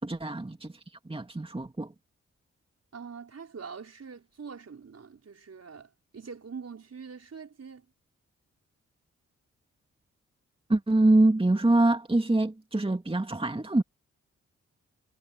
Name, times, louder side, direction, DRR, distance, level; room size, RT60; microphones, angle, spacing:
voice 1, 0.0-0.7 1.0-1.9 10.7-13.8, right 2 dB, 20° right, 2.4 m, -24 dB
voice 2, 2.9-7.9, right 5 dB, 55° right, 5.4 m, -44 dB
supercardioid pair, 45°, 30 cm